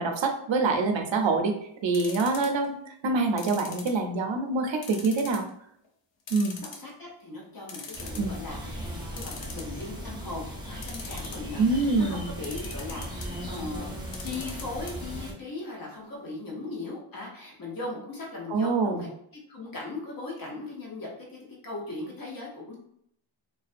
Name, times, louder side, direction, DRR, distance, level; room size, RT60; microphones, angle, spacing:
voice 1, 0.0-1.5 1.8-2.8 3.0-5.4 6.3-6.6 8.2-8.3 11.6-12.3 18.5-19.0, right 3 dB, 70° right, 4 dB, 0.5 m, -25 dB
sound 1, 1.9-2.7 3.4-4.3 4.8-5.5 5.8-5.9 6.3-7.1 7.4-7.5 7.7-8.3 9.2-10.0 10.7-11.6 12.4-13.3 14.0-14.9 15.2-15.3 15.6-15.7, left 5 dB, 65° left, 0.6 m, -41 dB
voice 2, 6.6-13.9 14.2-22.7, left 2 dB, 45° left, -3 dB, 0.9 m, -38 dB
sound 2, 7.9-15.3, equal, 10° right, 0.6 m, -38 dB
2.4 x 2.2 x 2.4 m, 0.70 s
wide cardioid pair, 75°, 48 cm